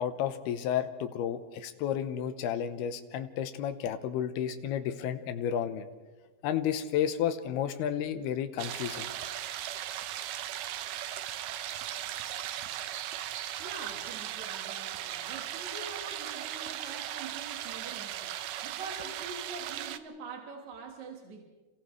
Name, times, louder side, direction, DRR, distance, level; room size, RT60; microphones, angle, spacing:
voice 1, 0.0-5.9 6.4-9.1, left 9 dB, 90° left, 9 dB, 2.9 m, -32 dB
sound 1, 8.6-20.0, right 12 dB, 75° right, 2.1 m, -37 dB
voice 2, 13.6-21.4, right 4 dB, 55° right, 1 dB, 2.8 m, -45 dB
29.5 x 28.0 x 3.3 m, 1.3 s
omnidirectional pair, 4.5 m